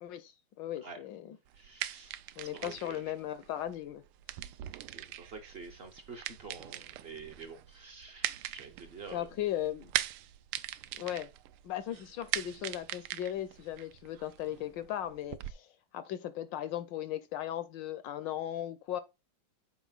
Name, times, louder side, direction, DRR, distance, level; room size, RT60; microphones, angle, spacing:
voice 1, 0.0-1.4 2.4-4.0 9.1-9.9 11.0-11.3 11.6-15.7 15.9-19.0, left 12 dB, 75° left, 1.2 m, -37 dB
voice 2, 1.5-2.2 2.5-3.0 4.9-9.3, right 4 dB, 55° right, 0.6 m, -48 dB
sound 1, 1.5-15.5, right 14 dB, 90° right, 1.5 m, -41 dB
7.0 x 4.8 x 3.9 m
omnidirectional pair, 2.3 m